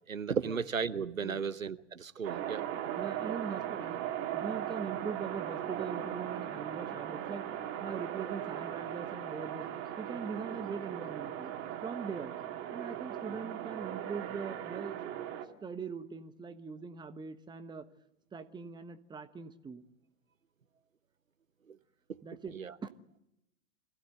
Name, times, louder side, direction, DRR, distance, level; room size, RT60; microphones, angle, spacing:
voice 1, 0.1-2.6 21.7-21.8 22.5-22.7, right 6 dB, 90° right, 1.0 m, -35 dB
sound 1, 2.2-15.4, right 11 dB, 35° right, 2.6 m, -38 dB
voice 2, 3.0-4.0 4.3-7.5 7.8-9.7 10.0-11.5 11.8-12.3 12.7-15.0 15.6-17.9 18.3-19.8 22.2-22.6 22.8-22.9, right 5 dB, 10° right, 1.3 m, -41 dB
25.5 x 16.0 x 8.0 m
figure-of-eight pair, 105°, 39 cm